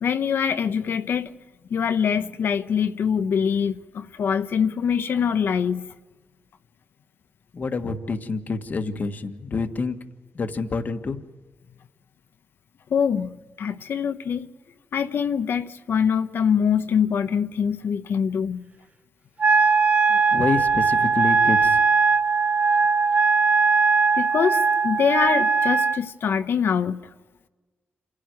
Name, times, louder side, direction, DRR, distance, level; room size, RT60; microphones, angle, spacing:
voice 1, 0.0-1.3 1.7-5.9 12.9-13.3 13.6-14.5 14.9-18.6 24.2-27.0, left 7 dB, 70° left, 0.8 m, -24 dB
voice 2, 7.5-10.0 10.3-11.2 20.1-21.8, left 4 dB, 50° left, 1.5 m, -27 dB
Wind instrument woodwind instrument, 19.4-26.0, right 4 dB, 35° right, 0.6 m, -20 dB
27.5 x 11.5 x 9.5 m
cardioid pair, 90°, 4 cm